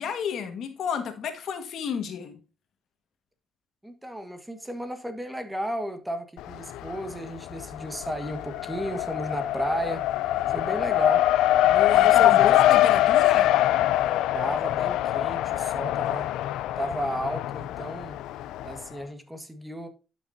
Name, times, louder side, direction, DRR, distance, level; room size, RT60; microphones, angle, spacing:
voice 1, 0.0-2.4 10.4-10.7 11.6-13.6, left 7 dB, 70° left, 1.6 m, -31 dB
voice 2, 3.8-10.0 10.5-11.3 11.9-12.5 14.3-16.3 16.8-18.2 18.6-19.9, equal, 10° right, 1.5 m, -33 dB
Race car auto racing, 6.4-7.1 7.4-18.8, left 13 dB, 90° left, 0.4 m, -23 dB
12.0 x 6.4 x 2.7 m
cardioid pair, 90°, 0 cm